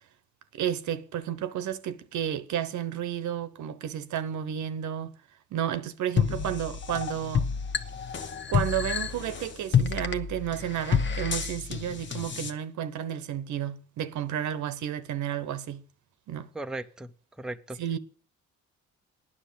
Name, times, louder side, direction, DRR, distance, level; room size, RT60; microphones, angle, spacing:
voice 1, 0.5-5.1 5.5-7.5 8.5-15.8 16.3-16.5 17.8-18.0, right 10 dB, 75° right, 1.0 m, -32 dB
sound 1, 6.2-12.5, left 7 dB, 40° left, 1.0 m, -29 dB
voice 2, 16.5-17.1 17.4-17.8, right 2 dB, ahead, 0.6 m, -36 dB
9.7 x 6.6 x 8.6 m
cardioid pair, 90°, 30 cm